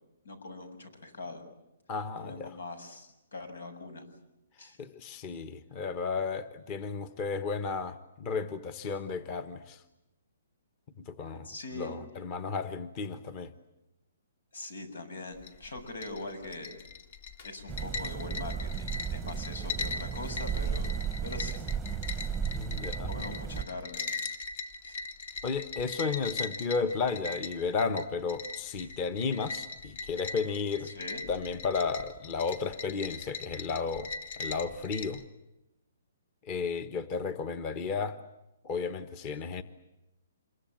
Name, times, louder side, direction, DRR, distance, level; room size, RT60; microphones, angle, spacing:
voice 1, 0.2-1.4 2.2-4.0 4.6-4.8 11.4-12.0 14.5-16.8 17.4-21.6 23.1-24.0 24.8-24.9 30.8-31.2, left 2 dB, 90° left, 10 dB, 7.2 m, -42 dB
voice 2, 1.9-2.6 4.8-9.8 11.1-11.5 11.8-13.5 22.5-23.1 25.4-30.9 31.3-34.1 34.4-35.2 36.4-38.2 38.6-39.6, left 5 dB, 25° left, 13 dB, 1.1 m, -33 dB
sound 1, 15.3-35.2, left 4 dB, 50° left, 2.3 m, -40 dB
sound 2, 17.7-23.6, right 7 dB, 5° right, 1.0 m, -34 dB
27.5 x 23.0 x 9.0 m, 0.90 s
hypercardioid pair, 170°, 0 cm